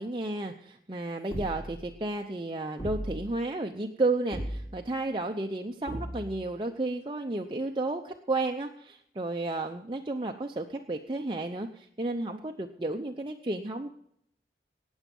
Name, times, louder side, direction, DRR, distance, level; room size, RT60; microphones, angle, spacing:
voice 1, 0.0-13.9, right 2 dB, 25° right, 3 dB, 0.7 m, -32 dB
sound 1, 1.3-1.9 2.8-3.4 4.3-4.9 5.9-6.5, equal, 30° left, 3.3 m, -37 dB
18.5 x 7.2 x 5.4 m, 0.71 s
head